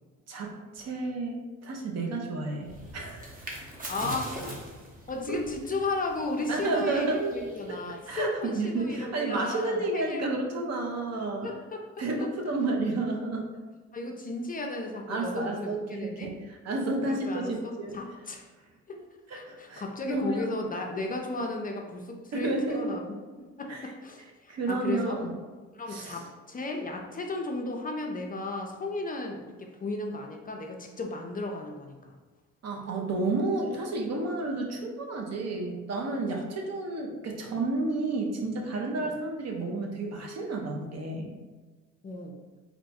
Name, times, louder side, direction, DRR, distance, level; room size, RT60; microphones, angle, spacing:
voice 1, 0.3-3.3 4.4-4.5 5.3-5.4 6.5-7.3 7.7-7.8 8.1-11.5 12.0-13.5 15.1-18.0 19.3-20.5 22.3-22.9 23.7-23.9 24.5-25.4 25.9-26.2 32.6-41.3, right 2 dB, 60° right, 1 dB, 0.7 m, -31 dB
sound 1, 2.6-8.4, right 1 dB, 30° right, 0.8 m, -43 dB
voice 2, 3.9-4.4 5.1-10.3 11.4-11.8 13.9-16.3 17.1-18.5 18.9-19.0 19.3-25.2 25.7-32.1 39.0-39.2 42.0-42.4, left 2 dB, 30° left, 2 dB, 0.4 m, -35 dB
2.8 x 2.2 x 4.1 m, 1.3 s
cardioid pair, 90°, 30 cm